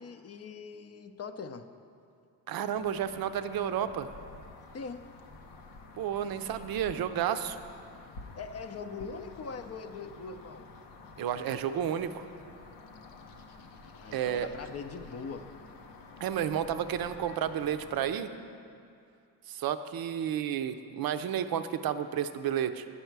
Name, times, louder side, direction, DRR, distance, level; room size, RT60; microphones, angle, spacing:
voice 1, 0.0-1.7 4.7-5.0 6.5-6.6 8.4-10.7 13.9-15.5, left 5 dB, 35° left, 9 dB, 0.6 m, -41 dB
voice 2, 2.5-4.1 6.0-7.6 11.2-12.3 14.1-14.5 16.2-18.3 19.5-22.8, right 9 dB, 55° right, 10 dB, 0.6 m, -31 dB
sound 1, 2.7-18.2, left 3 dB, 85° left, 0.8 m, -50 dB
10.0 x 5.5 x 4.6 m, 2.5 s
supercardioid pair, 55°, 43 cm